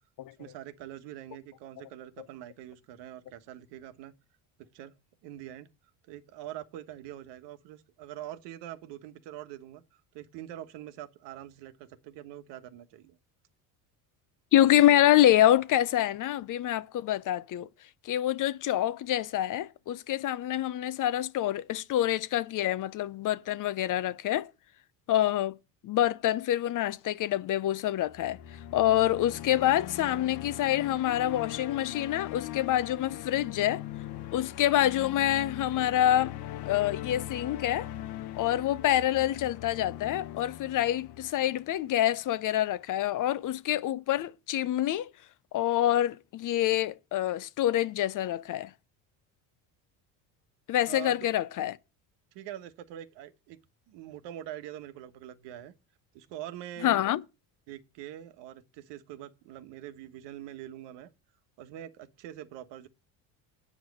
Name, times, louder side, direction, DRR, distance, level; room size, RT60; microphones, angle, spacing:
voice 1, 0.4-4.1 4.6-4.9 5.2-5.7 6.1-9.8 10.1-13.2 50.9-51.3 52.3-53.6 53.9-55.7 56.1-57.0 57.7-61.1 61.6-62.9, right 12 dB, 75° right, 1.3 m, -44 dB
voice 2, 14.5-17.7 18.1-24.5 25.1-25.5 25.8-28.4 28.7-33.8 34.3-36.3 36.7-37.9 38.4-45.1 45.5-48.7 50.7-51.8 56.8-57.2, left 12 dB, 45° left, 0.7 m, -26 dB
sound 1, 28.0-42.2, left 12 dB, 65° left, 1.0 m, -41 dB
9.3 x 5.3 x 7.8 m
supercardioid pair, 100°, 43 cm